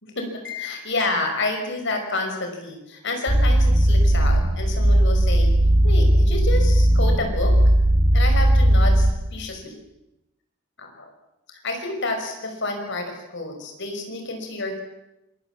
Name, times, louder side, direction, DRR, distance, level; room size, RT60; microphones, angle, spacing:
voice 1, 0.0-5.5 5.8-7.5 8.1-9.8 10.8-11.1 11.6-14.8, left 2 dB, 55° left, 4 dB, 5.9 m, -29 dB
sound 1, 3.3-9.1, right 1 dB, 60° right, 2.5 m, -17 dB
26.5 x 21.0 x 7.4 m, 0.90 s
head